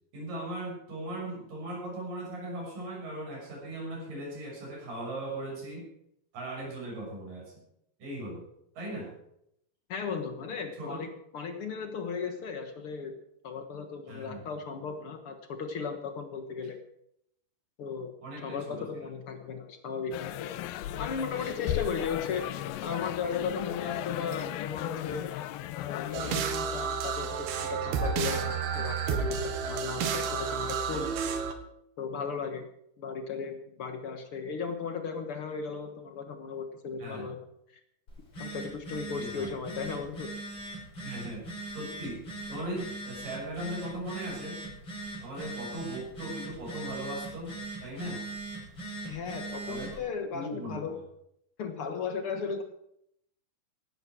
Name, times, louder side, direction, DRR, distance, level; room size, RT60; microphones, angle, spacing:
voice 1, 0.1-5.8 6.3-7.6 8.0-8.5 8.7-9.1 10.8-11.0 14.1-14.5 18.2-18.9 37.0-37.3 39.1-39.5 41.0-44.6 45.2-47.5 47.8-48.2 49.7-50.0 50.3-50.9, right 1 dB, 60° right, -2 dB, 8.4 m, -38 dB
voice 2, 9.9-11.1 11.3-13.1 13.4-16.8 17.8-18.1 18.4-20.5 20.9-22.4 22.8-25.3 25.8-31.1 32.0-32.7 33.0-37.4 38.4-40.3 49.0-51.0 51.6-52.6, left 5 dB, 65° left, 6 dB, 1.4 m, -36 dB
sound 1, 20.1-26.4, left 13 dB, 80° left, 2.5 m, -35 dB
sound 2, 26.1-31.5, right 6 dB, 85° right, 3.4 m, -31 dB
Telephone, 38.1-50.0, right 2 dB, 30° left, 6.2 m, -40 dB
17.0 x 12.5 x 4.7 m, 0.74 s
omnidirectional pair, 4.4 m